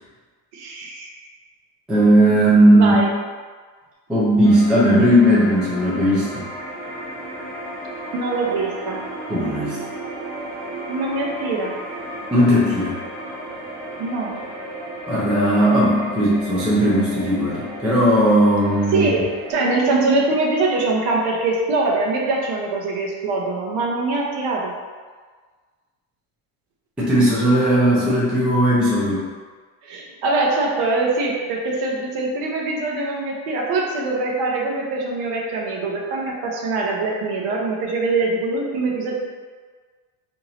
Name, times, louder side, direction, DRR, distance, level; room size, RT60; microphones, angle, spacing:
voice 1, 0.5-1.1 2.7-3.1 8.1-9.0 10.9-11.7 14.0-14.4 18.9-19.2 19.5-24.7 29.8-39.2, right 3 dB, 55° right, -1 dB, 0.8 m, -23 dB
voice 2, 1.9-3.0 4.1-6.5 9.3-9.8 12.3-13.0 15.1-19.1 27.0-29.3, equal, ahead, -8 dB, 0.3 m, -17 dB
sound 1, 4.4-19.5, right 1 dB, 20° right, 0.8 m, -34 dB
2.9 x 2.8 x 4.0 m, 1.5 s
cardioid pair, 145°, 45 cm